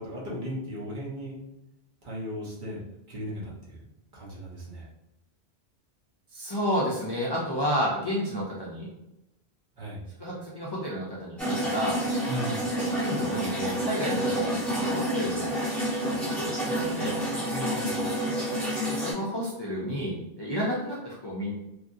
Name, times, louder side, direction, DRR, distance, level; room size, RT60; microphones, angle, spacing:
voice 1, 0.0-1.4 2.0-3.8 4.1-4.9 9.8-10.0 12.3-12.5 16.6-18.1, equal, 50° right, -5 dB, 1.0 m, -37 dB
voice 2, 6.3-8.9 10.2-12.0 12.7-15.6 16.0-17.1 18.9-21.5, equal, 35° left, -7 dB, 0.4 m, -31 dB
sound 1, 11.4-19.1, equal, ahead, 0.8 m, -29 dB
3.0 x 2.5 x 2.5 m, 0.91 s
omnidirectional pair, 1.1 m